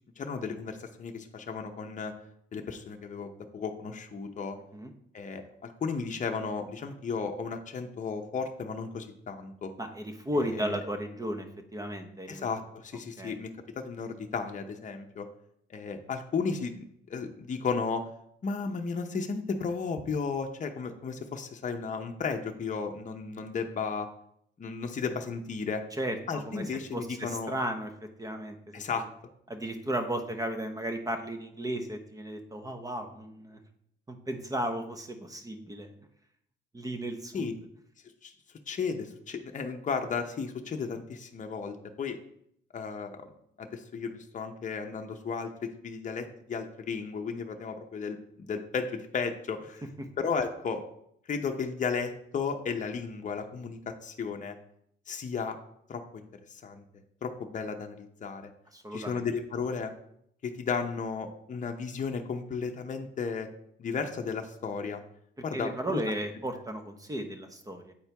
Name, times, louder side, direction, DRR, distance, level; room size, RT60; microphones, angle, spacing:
voice 1, 0.2-2.1 2.5-4.6 5.1-9.7 10.4-10.8 12.3-15.3 15.7-18.1 18.4-24.1 24.6-25.8 26.3-27.5 28.7-29.1 37.3-37.5 38.2-38.3 38.7-42.2 42.7-43.3 43.6-49.8 50.2-50.8 51.3-54.6 55.1-55.6 55.9-56.8 57.2-58.5 58.9-59.9 60.4-63.5 63.8-65.0 65.4-66.0, left 5 dB, 40° left, 4 dB, 0.8 m, -34 dB
voice 2, 9.8-12.5 13.2-13.4 25.9-26.6 26.9-27.9 28.2-28.9 29.5-33.6 34.1-35.9 36.7-37.5 50.0-50.1 58.7-59.2 65.5-67.9, right 1 dB, 20° right, 6 dB, 1.0 m, -35 dB
8.5 x 4.5 x 3.4 m, 0.71 s
cardioid pair, 90°, 20 cm